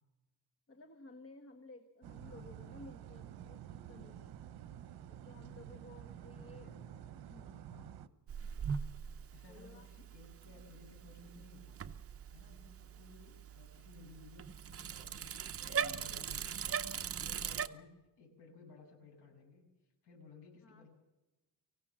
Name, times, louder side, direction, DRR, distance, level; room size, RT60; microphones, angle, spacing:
voice 1, 0.7-4.5 5.1-6.7 7.3-7.6 9.5-9.9 15.5-16.3 20.6-20.9, left 2 dB, 35° left, 8 dB, 1.6 m, -56 dB
sound 1, 2.0-8.1, right 10 dB, 65° right, 1.1 m, -50 dB
voice 2, 6.3-7.3 7.7-8.0 9.3-11.8 12.3-17.9 18.2-20.9, left 4 dB, 75° left, 1 dB, 7.7 m, -58 dB
Bicycle, 8.3-17.7, right 7 dB, 35° right, 0.8 m, -41 dB
25.0 x 16.0 x 7.6 m, 1.0 s
cardioid pair, 145°, 41 cm